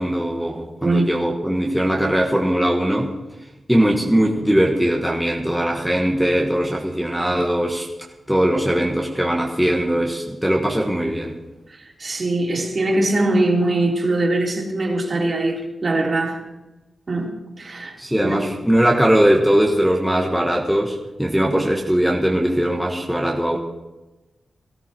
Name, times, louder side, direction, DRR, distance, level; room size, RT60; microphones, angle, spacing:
voice 1, 0.0-3.1 3.7-7.9 8.3-11.3 18.0-23.6, equal, ahead, -1 dB, 1.6 m, -20 dB
voice 2, 11.7-16.4 17.1-17.3 17.6-17.9 18.3-18.4, right 2 dB, 45° right, -2 dB, 3.8 m, -21 dB
18.0 x 14.5 x 4.6 m, 1.1 s
wide cardioid pair, 115°, 0 cm